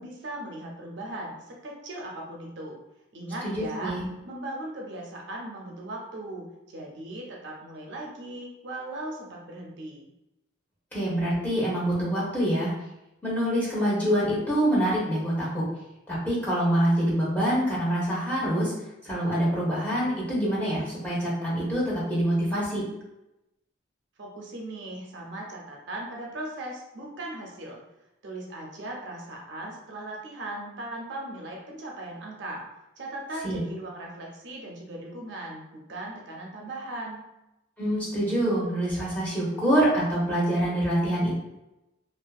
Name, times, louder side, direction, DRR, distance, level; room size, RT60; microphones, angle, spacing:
voice 1, 0.0-2.8 3.1-3.9 4.3-10.1 24.2-27.8 28.2-32.6 33.0-37.2, right 1 dB, 60° right, -1 dB, 0.5 m, -38 dB
voice 2, 3.4-4.1 10.9-12.7 13.2-15.7 16.1-18.7 19.0-22.8 33.4-33.6 37.8-41.3, right 1 dB, 10° left, -7 dB, 0.8 m, -25 dB
2.5 x 2.4 x 2.3 m, 0.92 s
head